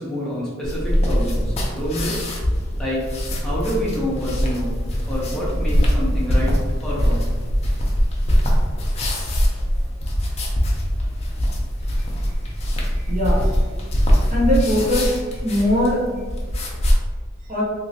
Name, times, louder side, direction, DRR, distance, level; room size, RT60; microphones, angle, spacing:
voice 1, 0.0-2.2 2.8-3.0 3.4-4.8 5.1-6.5 6.8-7.3, equal, 5° left, -8 dB, 0.9 m, -27 dB
sound 1, 0.6-16.9, equal, 30° left, 0.5 m, -22 dB
voice 2, 13.1-13.4 14.3-16.0 17.5-17.6, left 1 dB, 35° right, -6 dB, 0.6 m, -20 dB
2.9 x 2.9 x 2.7 m, 1.4 s
head